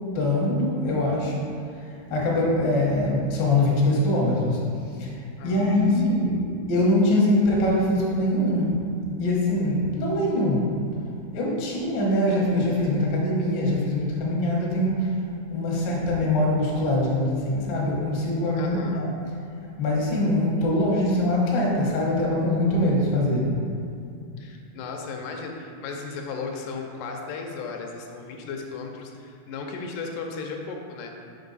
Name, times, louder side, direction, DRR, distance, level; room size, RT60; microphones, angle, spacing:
voice 1, 0.1-1.3 2.1-4.6 5.0-5.1 5.4-6.4 6.7-8.8 9.2-10.8 11.3-15.2 15.5-19.1 19.8-23.5, left 1 dB, 55° left, -5 dB, 1.3 m, -23 dB
voice 2, 5.4-6.2 18.6-19.0 24.4-31.1, left 4 dB, 85° left, 2 dB, 2.2 m, -35 dB
5.6 x 5.4 x 4.0 m, 2.4 s
omnidirectional pair, 3.7 m